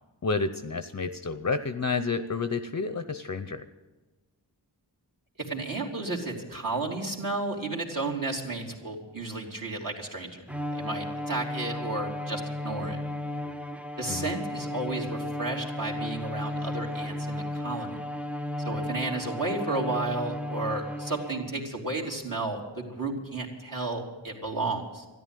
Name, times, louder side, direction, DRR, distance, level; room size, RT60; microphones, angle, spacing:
voice 1, 0.2-3.6 14.1-14.3, left 4 dB, 40° left, 10 dB, 0.7 m, -30 dB
voice 2, 5.4-10.4 10.7-13.0 14.0-17.9 18.6-25.1, right 2 dB, 45° right, 1 dB, 3.2 m, -32 dB
Bowed string instrument, 10.5-21.7, left 1 dB, 5° right, 0.6 m, -34 dB
13.0 x 10.5 x 9.0 m, 1.2 s
cardioid pair, 45°, 44 cm